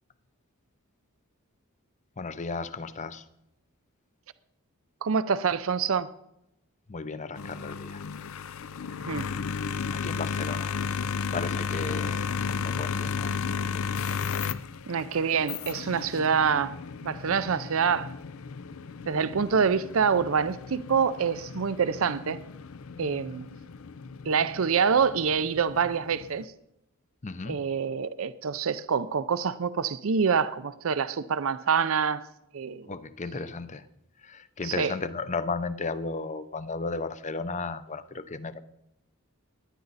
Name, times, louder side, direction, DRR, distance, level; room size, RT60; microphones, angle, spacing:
voice 1, 2.2-3.2 6.9-8.0 9.9-10.8 11.3-13.4 27.2-27.6 32.9-33.9 34.2-38.6, left 4 dB, 35° left, 0.7 m, -34 dB
voice 2, 5.0-6.1 9.0-9.3 14.9-16.7 17.0-18.1 19.1-22.4 23.0-23.5 24.3-26.5 27.5-32.2 32.5-32.9 34.6-34.9, right 6 dB, 65° right, 0.5 m, -26 dB
sound 1, 7.4-26.4, left 6 dB, 70° left, 0.5 m, -34 dB
18.5 x 10.5 x 4.1 m
head